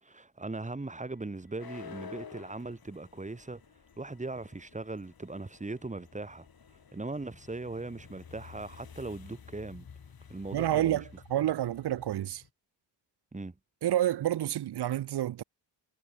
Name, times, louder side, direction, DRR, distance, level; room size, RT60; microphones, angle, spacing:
voice 1, 0.0-3.6 4.0-6.4 6.9-9.8 10.3-11.0 13.3-13.5, right 2 dB, 15° right, 1.5 m, -39 dB
sound 1, 1.0-12.5, left 6 dB, 50° left, 2.6 m, -51 dB
voice 2, 10.5-12.4 13.8-15.4, right 12 dB, 60° right, 0.6 m, -29 dB
cardioid pair, 80°, 44 cm